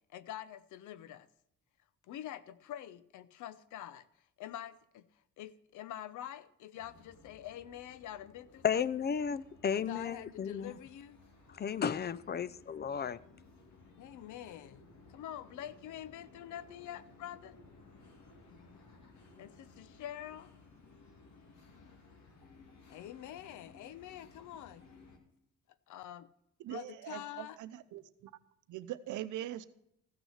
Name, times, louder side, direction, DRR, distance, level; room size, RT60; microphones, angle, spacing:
voice 1, 0.1-1.3 2.1-4.1 4.4-5.1 5.4-8.8 9.7-11.2 14.0-14.8 15.1-17.6 19.4-20.5 22.9-24.8 25.9-26.3 26.7-27.6, left 11 dB, 80° left, 0.7 m, -46 dB
sound 1, 6.7-25.2, left 3 dB, 65° left, 2.4 m, -59 dB
voice 2, 8.6-10.7 11.6-13.2, left 7 dB, 35° left, 0.5 m, -33 dB
voice 3, 26.6-28.3 28.7-29.7, right 13 dB, 80° right, 0.8 m, -42 dB
15.0 x 6.3 x 6.4 m
cardioid pair, 90°, 30 cm